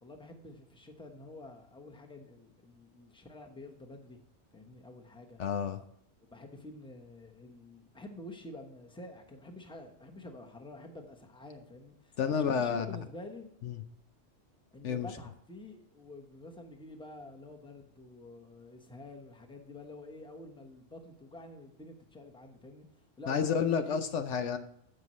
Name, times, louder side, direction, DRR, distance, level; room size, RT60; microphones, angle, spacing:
voice 1, 0.0-4.2 4.5-5.4 6.3-13.5 14.7-22.9 23.2-24.0, left 2 dB, 5° left, 3 dB, 1.0 m, -48 dB
voice 2, 5.4-5.8 12.2-12.9 13.6-13.8 14.8-15.1 23.3-24.6, left 7 dB, 70° left, 8 dB, 1.0 m, -30 dB
15.5 x 5.5 x 3.1 m, 0.70 s
omnidirectional pair, 1.3 m